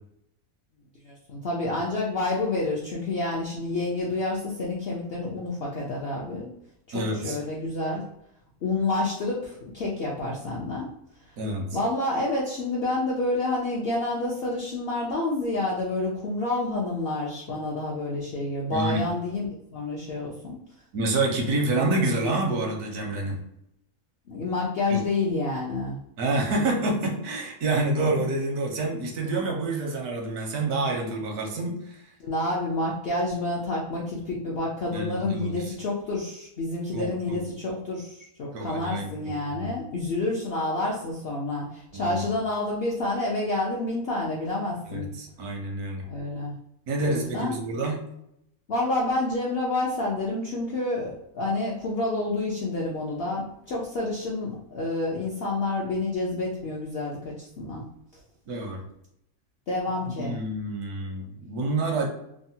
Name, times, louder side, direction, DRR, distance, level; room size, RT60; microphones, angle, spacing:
voice 1, 1.0-6.5 6.9-8.0 8.6-10.9 11.7-20.6 24.3-26.0 32.2-45.1 46.0-46.5 47.0-47.5 48.7-57.8 59.7-60.4, left 2 dB, 70° left, -4 dB, 0.5 m, -29 dB
voice 2, 6.9-7.4 11.4-11.7 18.7-19.0 20.9-23.4 24.9-25.0 26.2-32.0 34.9-35.7 36.9-37.4 38.5-39.7 41.9-42.2 44.9-46.1 46.9-48.0 58.5-58.8 60.2-62.1, right 2 dB, 80° right, 1 dB, 1.2 m, -28 dB
3.5 x 2.0 x 2.7 m, 0.77 s
omnidirectional pair, 1.6 m